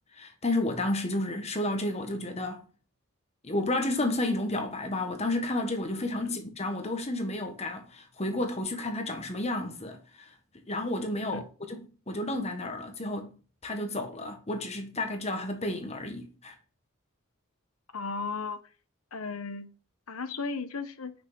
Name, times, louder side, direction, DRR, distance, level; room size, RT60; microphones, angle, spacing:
voice 1, 0.2-2.6 3.4-11.4 11.7-11.8 12.1-13.3 13.6-16.5, left 1 dB, 30° left, 1.4 m, -31 dB
voice 2, 17.9-18.6 19.1-19.7 20.1-21.1, left 4 dB, 80° left, 1.0 m, -35 dB
8.7 x 6.4 x 5.6 m
head